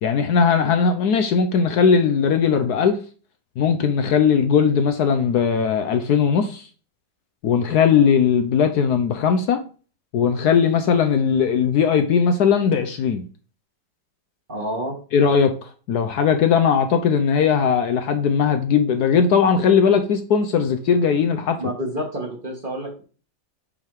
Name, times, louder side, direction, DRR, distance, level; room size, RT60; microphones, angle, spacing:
voice 1, 0.0-3.0 3.6-6.7 7.4-9.6 10.1-13.3 15.1-21.6, left 6 dB, 70° left, 6 dB, 1.1 m, -19 dB
voice 2, 14.5-14.9 21.6-23.0, equal, 30° right, 1 dB, 1.3 m, -28 dB
7.6 x 3.5 x 4.6 m, 0.38 s
omnidirectional pair, 2.0 m